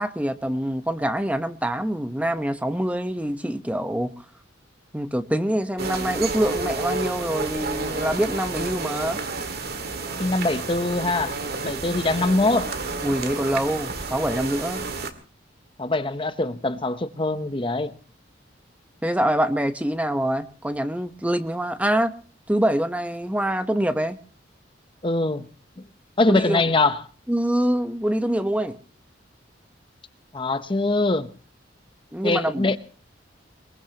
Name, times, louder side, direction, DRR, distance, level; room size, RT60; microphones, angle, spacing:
voice 1, 0.0-4.1 4.9-9.2 13.0-14.8 19.0-22.1 22.5-24.2 26.3-26.6 27.3-28.8 32.1-32.7, right 1 dB, 10° right, 0.9 m, -25 dB
sound 1, 5.8-15.1, right 3 dB, 55° right, 2.0 m, -30 dB
voice 2, 10.2-11.4 11.6-12.7 15.8-17.9 25.0-25.5 26.2-27.0 30.3-31.3 32.2-32.8, left 2 dB, 25° left, 0.8 m, -23 dB
23.0 x 22.0 x 2.9 m
head